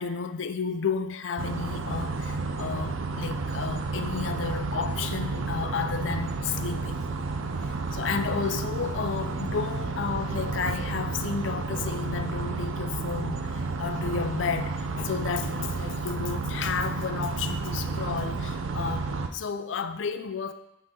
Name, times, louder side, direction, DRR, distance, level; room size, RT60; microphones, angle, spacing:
voice 1, 0.0-7.0 7.6-20.5, left 6 dB, 65° left, 10 dB, 0.4 m, -32 dB
sound 1, 1.4-19.3, right 3 dB, 85° right, 0.5 m, -31 dB
7.6 x 4.1 x 3.7 m, 0.85 s
head